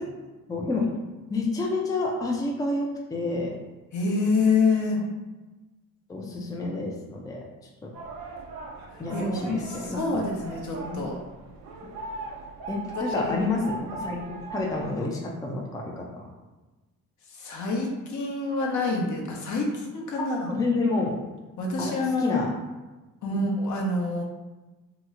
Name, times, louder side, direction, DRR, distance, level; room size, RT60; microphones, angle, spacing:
voice 1, 0.5-0.9 1.3-3.5 6.1-7.4 9.0-10.2 10.9-11.0 12.7-16.2 20.2-21.2 21.8-21.9 22.2-22.5 23.3-23.4, left 3 dB, 10° left, -2 dB, 0.5 m, -29 dB
voice 2, 3.9-5.0 8.9-11.1 13.0-13.4 17.3-20.5 21.6-22.4 23.2-24.2, left 3 dB, 55° left, 0 dB, 0.8 m, -27 dB
sound 1, 7.9-15.0, right 3 dB, 75° right, 0.6 m, -39 dB
2.9 x 2.0 x 3.6 m, 1.1 s
cardioid pair, 85°, 35 cm